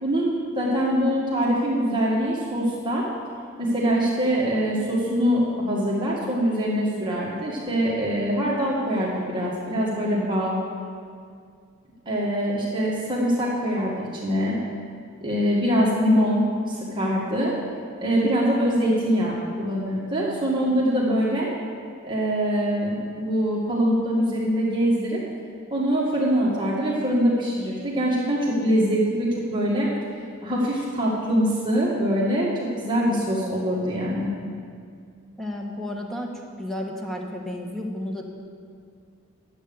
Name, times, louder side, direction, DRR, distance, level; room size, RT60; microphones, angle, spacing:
voice 1, 0.0-3.0 3.6-10.6 12.0-14.6 15.2-16.4 16.7-17.5 18.0-21.5 22.0-25.2 25.7-29.9 30.4-34.3, equal, 25° right, -6 dB, 1.8 m, -23 dB
voice 2, 35.4-36.3 36.6-38.2, left 1 dB, ahead, 0 dB, 1.3 m, -32 dB
11.0 x 8.2 x 7.0 m, 2.2 s
head